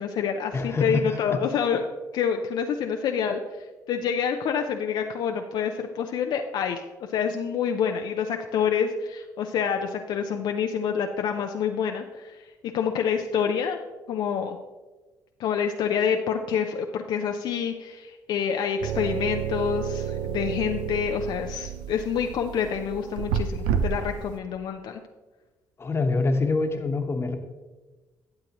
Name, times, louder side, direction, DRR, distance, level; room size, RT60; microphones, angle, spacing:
voice 1, 0.0-12.4 12.7-13.8 14.1-14.6 15.4-25.0, left 7 dB, 65° left, 4 dB, 0.6 m, -27 dB
voice 2, 0.5-1.4 25.8-27.4, left 3 dB, 35° left, 5 dB, 1.2 m, -25 dB
sound 1, 18.8-24.4, right 8 dB, 85° right, 0.6 m, -30 dB
12.0 x 7.6 x 3.0 m, 1.2 s
supercardioid pair, 65°, 8 cm